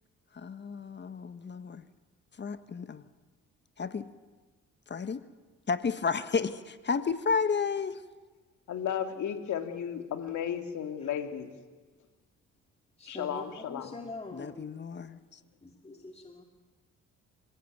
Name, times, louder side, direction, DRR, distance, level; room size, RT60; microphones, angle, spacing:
voice 1, 0.3-1.9 2.3-3.1 3.8-4.1 4.9-5.2 5.7-8.1 14.3-15.4, left 5 dB, 35° left, 11 dB, 1.3 m, -32 dB
voice 2, 8.7-11.5 13.1-13.9, left 9 dB, 75° left, 6 dB, 2.8 m, -34 dB
voice 3, 13.0-14.7 15.6-16.4, left 3 dB, 20° left, 3 dB, 2.2 m, -44 dB
28.0 x 16.5 x 9.3 m, 1.3 s
cardioid pair, 90°, 30 cm